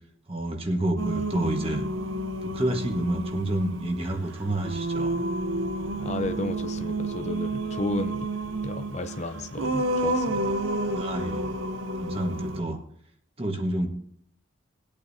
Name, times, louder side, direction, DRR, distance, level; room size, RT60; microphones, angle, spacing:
voice 1, 0.3-1.9 2.4-5.2 10.9-11.5 12.0-12.8 13.4-13.9, right 1 dB, 30° right, 4 dB, 1.5 m, -29 dB
Singing, 1.0-12.6, right 1 dB, 85° right, 0.9 m, -30 dB
voice 2, 6.0-8.3 8.6-10.6, left 2 dB, 35° left, 8 dB, 0.6 m, -33 dB
19.5 x 8.7 x 2.8 m, 0.71 s
head